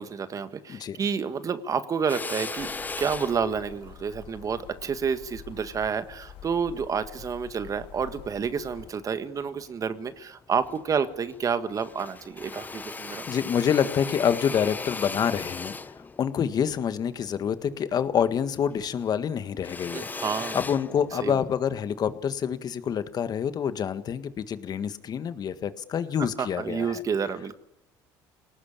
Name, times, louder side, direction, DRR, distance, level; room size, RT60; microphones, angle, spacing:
voice 1, 0.0-2.7 3.0-13.2 19.9-20.6 21.2-21.4 26.4-27.6, right 6 dB, 40° right, 11 dB, 1.6 m, -29 dB
Drill, 2.1-6.6 7.2-8.4 8.8-9.7 10.1-10.2 10.5-11.5 11.7-18.4 18.7-21.6, left 4 dB, 20° left, 0.8 m, -38 dB
sound 1, 2.6-8.9, left 10 dB, 65° left, 1.9 m, -47 dB
voice 2, 13.0-15.8 16.2-20.1 20.5-27.0, left 8 dB, 45° left, 11 dB, 1.7 m, -27 dB
28.0 x 19.0 x 8.8 m, 0.89 s
supercardioid pair, 95°, 9 cm